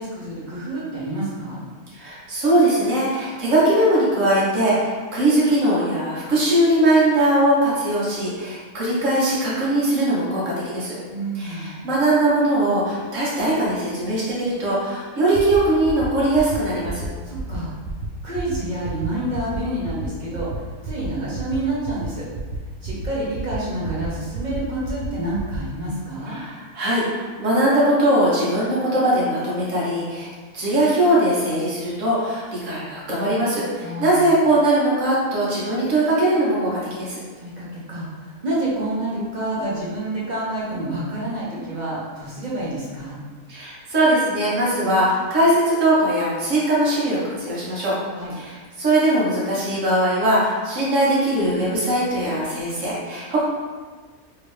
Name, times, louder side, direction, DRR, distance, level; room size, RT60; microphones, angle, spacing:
voice 1, 0.0-1.6 11.1-11.8 17.2-17.7 18.2-20.5 20.8-22.3 22.8-26.4 33.8-34.3 37.4-43.2 48.2-48.3, right 1 dB, 40° right, -7 dB, 0.7 m, -28 dB
voice 2, 1.9-11.0 11.3-17.0 26.3-37.2 43.5-47.9 48.3-53.4, right 1 dB, 60° right, -7 dB, 1.2 m, -20 dB
sound 1, 15.3-15.6 15.8-16.1 16.3-16.6 16.8-17.1 17.3-17.6 17.8-18.1 18.3-18.6 18.8-19.1 19.3-19.6 19.8-20.1 20.3-20.6 20.8-21.1 21.3-21.6 21.8-22.1 22.3-22.6 22.8-23.1 23.3-23.6 23.8-24.1 24.3-24.6 24.8-25.1 25.3-25.6, right 4 dB, 80° right, 0.5 m, -31 dB
3.0 x 2.7 x 3.1 m, 1.4 s
omnidirectional pair, 1.6 m